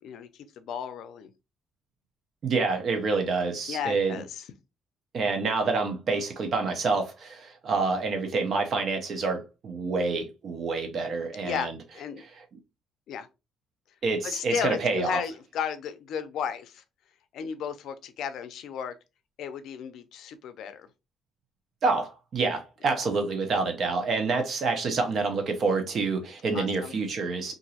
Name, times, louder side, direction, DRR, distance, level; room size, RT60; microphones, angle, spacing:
voice 1, 0.0-1.3 3.7-4.5 11.4-11.7 11.9-12.2 13.1-13.3 14.2-16.8 17.3-18.9 19.4-20.9 26.5-26.9, left 7 dB, 70° left, 0.4 m, -34 dB
voice 2, 2.4-4.2 5.1-11.8 14.0-15.2 21.8-27.5, right 4 dB, 45° right, 0.6 m, -27 dB
2.9 x 2.5 x 2.8 m
cardioid pair, 140°, 0 cm